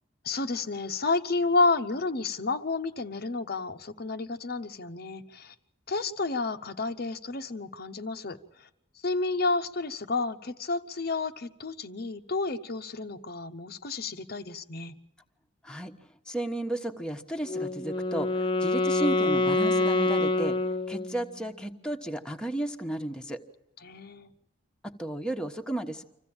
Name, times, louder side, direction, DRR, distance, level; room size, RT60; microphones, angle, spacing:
voice 1, 0.2-5.5 5.9-8.7 9.0-15.0 23.8-24.3, left 3 dB, 55° left, 8 dB, 0.8 m, -30 dB
voice 2, 16.3-20.6 20.9-23.4 24.8-26.0, right 1 dB, 5° left, 3 dB, 1.2 m, -33 dB
Wind instrument woodwind instrument, 17.5-21.4, left 2 dB, 25° left, 0.9 m, -26 dB
26.0 x 15.5 x 8.8 m, 0.88 s
head